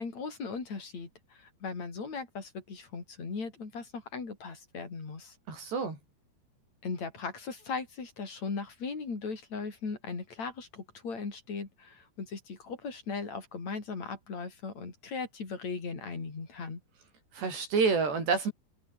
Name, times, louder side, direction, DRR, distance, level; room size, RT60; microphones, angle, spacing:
voice 1, 0.0-5.4 6.8-16.8, left 4 dB, 40° left, 6.2 m, -38 dB
voice 2, 5.5-6.0 17.3-18.5, right 5 dB, 70° right, 9.9 m, -28 dB
omnidirectional pair, 5.0 m